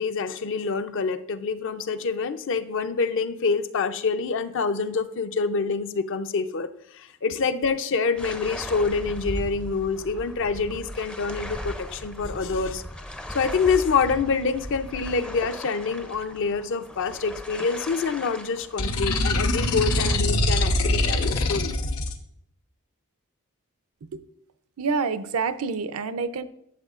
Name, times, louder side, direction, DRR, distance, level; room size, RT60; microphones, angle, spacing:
voice 1, 0.0-12.8 13.3-21.7, left 4 dB, 55° left, 10 dB, 0.5 m, -26 dB
sound 1, 8.2-20.2, left 1 dB, 5° left, 0.4 m, -38 dB
sound 2, 18.8-22.1, left 2 dB, 85° left, 1.0 m, -23 dB
voice 2, 24.8-26.4, right 5 dB, 75° right, 12 dB, 0.5 m, -27 dB
12.0 x 7.2 x 2.4 m, 0.74 s
head